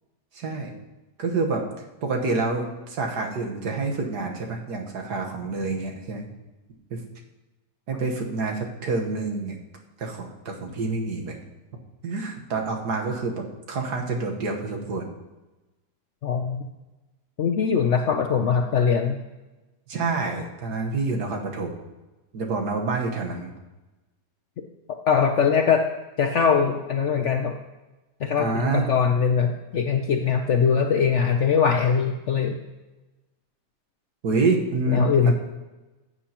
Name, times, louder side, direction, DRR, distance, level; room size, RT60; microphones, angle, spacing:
voice 1, 0.3-0.7 1.2-1.7 2.0-6.2 6.9-7.0 7.9-9.6 10.0-11.4 12.0-15.1 19.9-21.7 22.3-23.5 28.4-28.9 34.2-35.3, right 3 dB, 70° right, 2 dB, 1.8 m, -27 dB
voice 2, 16.2-16.7 17.4-19.2 25.1-25.8 26.2-27.5 28.2-32.6 34.9-35.3, left 6 dB, 60° left, 4 dB, 0.7 m, -21 dB
15.0 x 8.1 x 2.9 m, 1.1 s
omnidirectional pair, 1.8 m